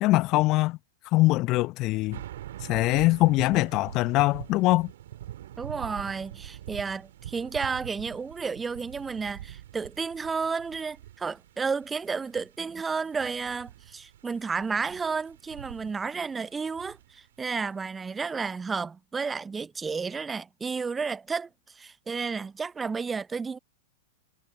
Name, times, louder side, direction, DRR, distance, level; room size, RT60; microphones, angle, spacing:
voice 1, 0.0-0.8 1.1-2.2 2.6-4.9, left 20 dB, 40° left, 0.7 m, -23 dB
sound 1, 2.1-17.3 17.8-17.9, right 12 dB, 60° right, 3.1 m, -44 dB
voice 2, 5.6-23.6, right 5 dB, 15° right, 0.5 m, -32 dB
figure-of-eight pair, 100°, 0 cm